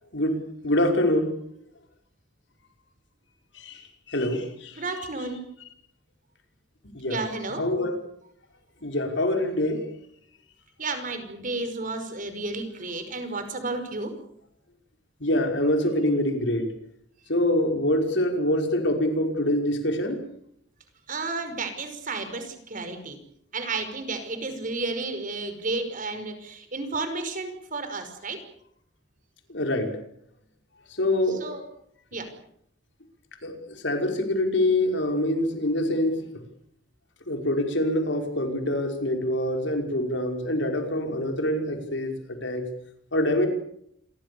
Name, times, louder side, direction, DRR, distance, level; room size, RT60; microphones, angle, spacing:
voice 1, 0.6-1.3 3.6-3.8 4.1-4.7 6.9-7.2 7.5-7.9 8.8-9.8 15.2-16.7 17.3-20.2 29.5-29.9 31.0-31.5 33.4-33.5 33.8-36.2 37.3-42.1 42.4-42.7 43.1-43.5, left 1 dB, 85° left, 4 dB, 5.4 m, -25 dB
voice 2, 4.7-5.5 7.1-7.6 10.8-14.2 21.1-23.2 23.5-28.4 31.3-31.6 32.1-32.3, right 3 dB, 50° right, 8 dB, 5.5 m, -32 dB
28.0 x 23.0 x 7.1 m, 0.71 s
head